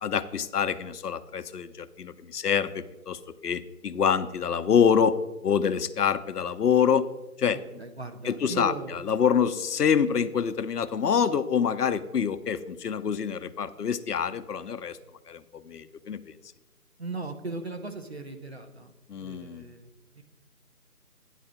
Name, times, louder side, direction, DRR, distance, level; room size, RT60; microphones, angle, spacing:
voice 1, 0.0-5.1 5.4-7.0 7.4-7.6 8.2-8.7 9.1-15.0 15.3-16.2 19.1-19.6, left 7 dB, 80° left, 12 dB, 0.6 m, -26 dB
voice 2, 7.5-8.9 17.0-20.2, right 2 dB, 45° right, 6 dB, 0.6 m, -38 dB
9.0 x 4.0 x 6.1 m, 1.0 s
figure-of-eight pair, 165°, 46 cm